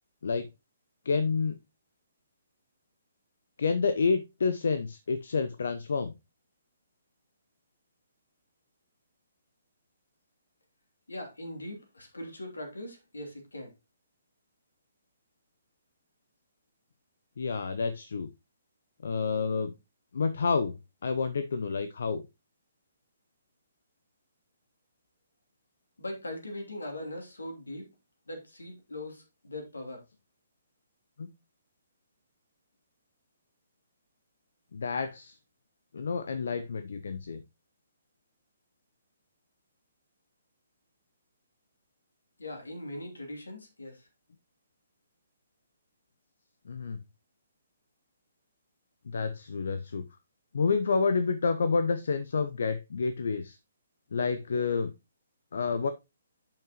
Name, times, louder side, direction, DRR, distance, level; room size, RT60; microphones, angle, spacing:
voice 1, 1.0-1.5 3.6-6.1 17.4-18.3 19.0-19.7 20.1-20.7 21.0-22.2 31.2-31.3 34.7-35.3 35.9-37.4 46.7-47.0 49.1-50.0 50.5-53.6 54.1-54.9 55.5-55.9, left 4 dB, 60° left, 0.7 m, -29 dB
voice 2, 11.1-13.7 26.0-27.9 28.3-30.0 42.4-44.1, left 1 dB, 80° left, 3.0 m, -40 dB
10.5 x 5.9 x 3.0 m
figure-of-eight pair, 130°, 0 cm